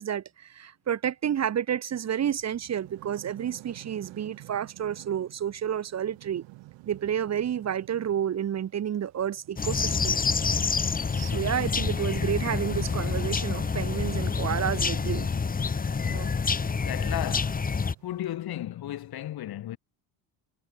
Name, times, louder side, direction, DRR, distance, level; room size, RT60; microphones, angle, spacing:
voice 1, 0.0-6.4 6.8-10.2 11.1-15.3 16.1-16.3, right 9 dB, 40° right, 1.2 m, -30 dB
sound 1, 2.0-18.3, right 20 dB, 85° right, 3.1 m, -51 dB
sound 2, 9.6-17.9, left 5 dB, 20° left, 1.4 m, -27 dB
voice 2, 16.0-16.4 16.8-17.7 18.0-19.8, left 13 dB, 60° left, 3.7 m, -35 dB
cardioid pair, 125°, 43 cm